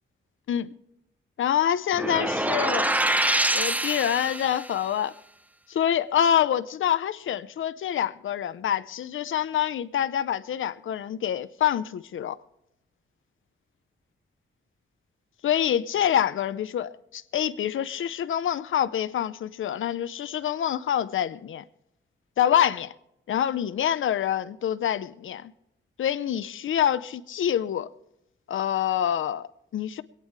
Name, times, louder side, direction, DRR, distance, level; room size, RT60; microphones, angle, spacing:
voice 1, 1.4-2.9 3.5-5.1 5.7-12.4 15.4-21.6 22.4-22.9 23.3-25.5 26.0-27.9 28.5-30.0, left 10 dB, 85° left, 0.7 m, -26 dB
sound 1, 1.9-4.7, right 1 dB, 10° right, 0.6 m, -25 dB
26.0 x 9.3 x 3.2 m
wide cardioid pair, 145°, 20 cm